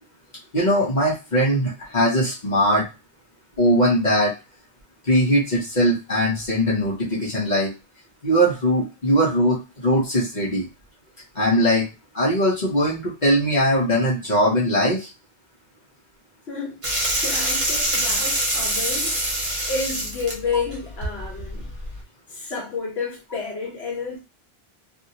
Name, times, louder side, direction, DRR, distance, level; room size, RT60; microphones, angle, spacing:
voice 1, 0.5-2.9 3.6-4.3 5.0-7.7 8.2-10.7 11.3-11.9 12.1-15.1, equal, 45° left, 1.1 m, -20 dB
voice 2, 16.5-16.8 17.2-19.3 19.7-21.7 22.3-24.2, left 4 dB, 80° left, 1.4 m, -30 dB
sound 1, 16.8-22.0, right 1 dB, 30° right, 1.0 m, -25 dB
2.9 x 2.7 x 2.7 m
omnidirectional pair, 1.1 m